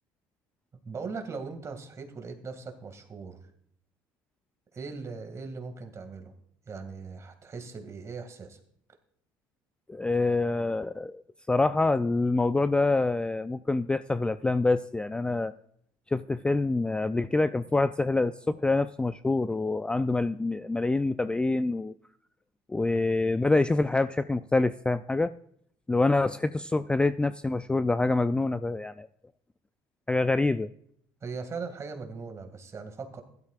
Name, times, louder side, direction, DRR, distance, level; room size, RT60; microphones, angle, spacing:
voice 1, 0.8-3.4 4.7-6.3 6.7-8.6 31.2-33.2, right 4 dB, 35° right, 6 dB, 2.2 m, -39 dB
voice 2, 9.9-11.2 11.5-15.5 16.1-21.9 22.7-25.3 25.9-29.1 30.1-30.7, left 3 dB, 10° left, 12 dB, 0.3 m, -26 dB
15.5 x 12.0 x 2.5 m, 0.67 s
supercardioid pair, 95°, 9 cm